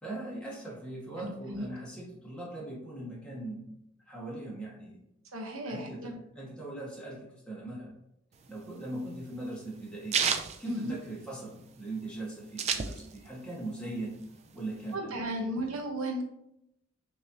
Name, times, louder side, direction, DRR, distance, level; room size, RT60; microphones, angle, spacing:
voice 1, 0.0-3.8 4.1-5.0 5.6-7.9 8.5-10.3 10.6-14.2 14.5-15.1 15.4-15.7, right 2 dB, 5° left, -6 dB, 1.5 m, -40 dB
voice 2, 1.2-1.7 5.3-6.1 10.6-10.9 14.9-16.2, right 1 dB, 80° right, 3 dB, 0.9 m, -35 dB
sound 1, 8.4-11.5 11.9-12.0 12.1-13.4 13.8-14.9, right 6 dB, 30° right, 0.3 m, -32 dB
6.1 x 3.0 x 2.7 m, 0.83 s
head